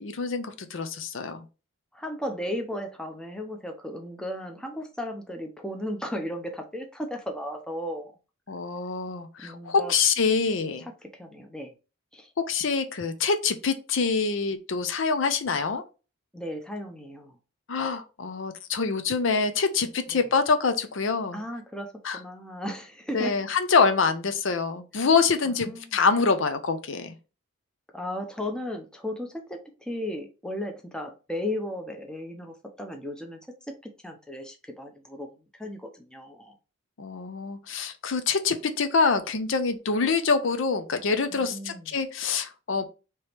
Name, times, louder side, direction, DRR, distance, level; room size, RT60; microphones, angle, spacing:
voice 1, 0.0-1.4 8.5-10.9 12.5-15.8 17.7-21.4 22.0-22.2 23.1-27.2 37.0-42.8, left 5 dB, 60° left, 8 dB, 0.5 m, -25 dB
voice 2, 1.9-8.2 9.4-9.9 10.8-11.7 12.1-12.3 16.3-17.4 20.1-20.3 21.3-23.4 25.0-25.1 25.4-26.0 27.9-33.4 33.7-36.5 41.3-42.0, left 1 dB, 5° left, 3 dB, 0.7 m, -35 dB
4.7 x 3.0 x 3.3 m, 0.31 s
head